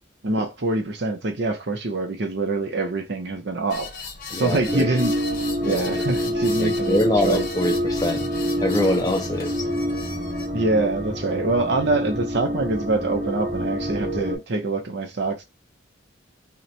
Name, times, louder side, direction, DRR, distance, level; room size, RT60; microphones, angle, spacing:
voice 1, 0.2-3.9 4.3-5.1 5.6-7.5 10.5-15.4, right 2 dB, 60° right, 0.6 m, -25 dB
sound 1, 3.7-10.5, left 4 dB, 45° left, 0.8 m, -37 dB
voice 2, 4.3-4.9 5.6-6.0 6.6-8.3 8.6-9.7, left 1 dB, 20° left, 0.5 m, -24 dB
sound 2, 4.7-14.4, equal, 25° right, 1.0 m, -27 dB
2.9 x 2.1 x 3.8 m
head